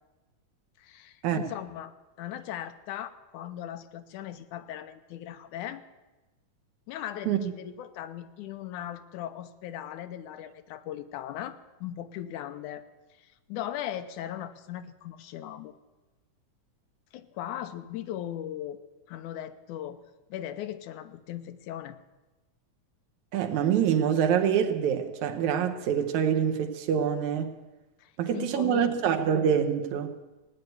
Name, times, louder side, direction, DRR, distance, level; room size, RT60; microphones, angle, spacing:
voice 1, 0.8-5.8 6.9-12.8 13.2-15.7 17.1-18.8 19.1-20.0 20.3-22.0 28.0-29.0, left 11 dB, 85° left, 2.2 m, -38 dB
voice 2, 23.3-27.5 28.2-30.1, right 8 dB, 75° right, 2.4 m, -25 dB
16.5 x 9.4 x 9.3 m
omnidirectional pair, 3.5 m